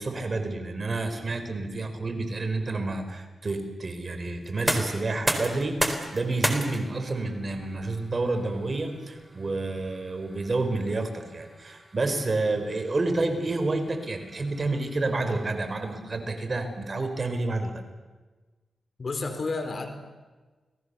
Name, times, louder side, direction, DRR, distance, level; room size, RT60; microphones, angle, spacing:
voice 1, 0.0-17.7, right 2 dB, 45° right, 6 dB, 4.7 m, -29 dB
sound 1, 4.4-16.2, right 1 dB, 10° right, 4.0 m, -35 dB
voice 2, 19.0-19.9, left 3 dB, 55° left, 7 dB, 4.1 m, -31 dB
30.0 x 20.0 x 7.0 m, 1.3 s
cardioid pair, 60°, 0 cm